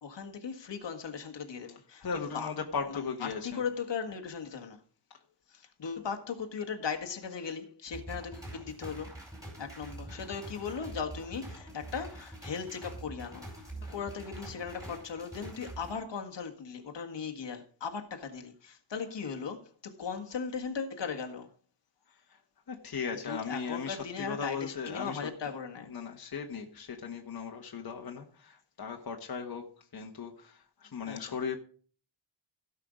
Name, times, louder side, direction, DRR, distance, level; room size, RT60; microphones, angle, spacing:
voice 1, 0.0-2.1 2.3-2.5 2.9-4.8 5.5-9.1 9.6-21.5 23.2-25.9 31.1-31.3, left 6 dB, 65° left, 1.7 m, -38 dB
voice 2, 2.0-3.6 22.3-22.4 22.7-25.2 25.9-29.6 29.9-31.6, left 6 dB, 50° left, 1.5 m, -37 dB
sound 1, 7.9-15.9, right 1 dB, 5° right, 4.6 m, -45 dB
17.0 x 5.6 x 5.1 m
wide cardioid pair, 150°, 46 cm